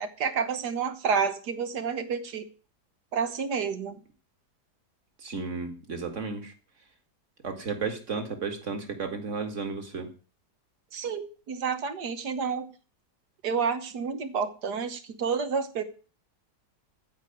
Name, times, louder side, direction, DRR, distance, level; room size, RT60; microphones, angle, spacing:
voice 1, 0.0-2.5 3.1-4.0 10.9-12.7 13.4-15.8, right 6 dB, 75° right, 9 dB, 1.7 m, -29 dB
voice 2, 5.2-6.5 7.4-10.1, right 4 dB, 45° right, 5 dB, 2.4 m, -33 dB
14.5 x 5.0 x 9.2 m, 0.37 s
omnidirectional pair, 1.8 m